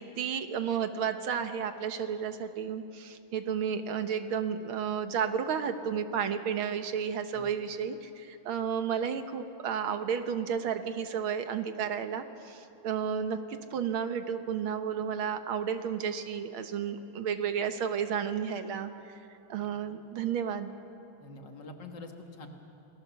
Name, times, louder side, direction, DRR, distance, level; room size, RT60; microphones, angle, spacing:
voice 1, 0.0-13.4 13.7-18.9 19.5-20.7, right 7 dB, 80° right, 8 dB, 1.9 m, -32 dB
voice 2, 21.2-22.5, left 3 dB, 60° left, 3 dB, 2.4 m, -46 dB
28.0 x 18.5 x 7.1 m, 3.0 s
omnidirectional pair, 2.3 m